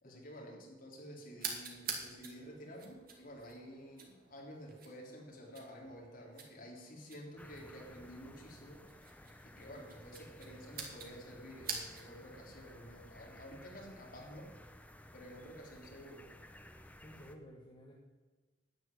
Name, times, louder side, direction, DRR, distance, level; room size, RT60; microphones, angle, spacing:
voice 1, 0.0-8.8 9.4-14.5 15.1-16.3, equal, 50° left, -1 dB, 3.5 m, -51 dB
sound 1, 1.4-12.2, right 5 dB, 50° right, 2.4 m, -48 dB
sound 2, 7.4-17.4, left 1 dB, 10° left, 0.7 m, -56 dB
voice 2, 17.0-17.9, equal, 25° left, -1 dB, 1.4 m, -54 dB
11.0 x 8.8 x 9.3 m, 1.3 s
head